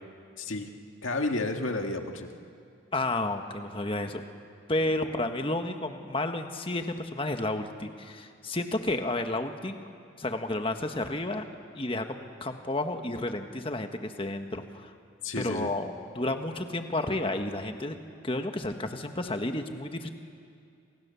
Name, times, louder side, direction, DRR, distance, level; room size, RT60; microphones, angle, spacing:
voice 1, 0.4-0.7 1.0-2.3 4.8-4.9 15.2-15.7, left 2 dB, 80° left, 4 dB, 2.0 m, -31 dB
voice 2, 2.9-4.2 4.7-9.8 10.2-11.4 11.7-14.9 15.4-17.9 18.2-20.1, left 2 dB, 25° left, 6 dB, 1.5 m, -31 dB
29.0 x 27.0 x 7.1 m, 2.4 s
head